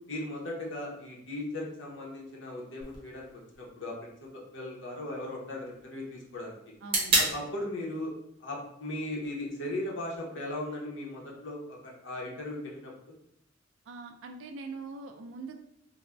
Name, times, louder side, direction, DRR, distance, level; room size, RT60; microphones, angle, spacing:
voice 1, 0.1-6.6 7.1-8.1 8.4-12.9, left 1 dB, 70° left, -2 dB, 0.7 m, -38 dB
sound 1, 2.8-10.8, right 2 dB, 30° right, 0.8 m, -36 dB
voice 2, 6.8-7.1 13.9-15.6, right 3 dB, 75° right, 3 dB, 0.3 m, -42 dB
2.4 x 2.0 x 3.2 m, 0.77 s
head